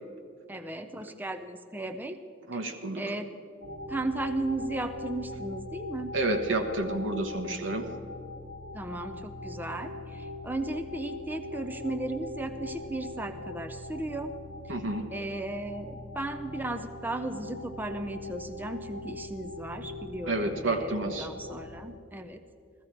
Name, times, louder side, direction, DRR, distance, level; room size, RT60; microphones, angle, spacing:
voice 1, 0.5-2.2 2.5-2.6 3.0-3.3 3.9-6.1 8.7-14.3 14.7-14.8 15.1-22.4, right 2 dB, 10° right, 6 dB, 0.5 m, -35 dB
voice 2, 2.5-3.0 6.1-7.9 14.7-15.0 20.3-21.3, right 2 dB, 80° right, 5 dB, 1.3 m, -30 dB
sound 1, 3.6-21.8, left 2 dB, 65° right, 1.6 m, -41 dB
15.0 x 14.5 x 4.6 m, 2.4 s
head